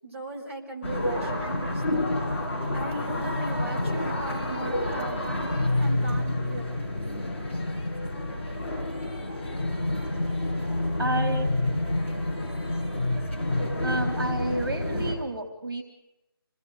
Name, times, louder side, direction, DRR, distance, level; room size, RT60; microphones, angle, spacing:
voice 1, 0.0-2.1 2.7-6.9, right 2 dB, 35° right, -2 dB, 5.4 m, -39 dB
sound 1, 0.8-15.1, left 1 dB, 30° left, 7.1 m, -28 dB
voice 2, 11.0-11.5 13.8-15.8, right 2 dB, 60° right, 4 dB, 4.0 m, -30 dB
28.0 x 20.0 x 6.7 m, 0.91 s
figure-of-eight pair, 175°, 13 cm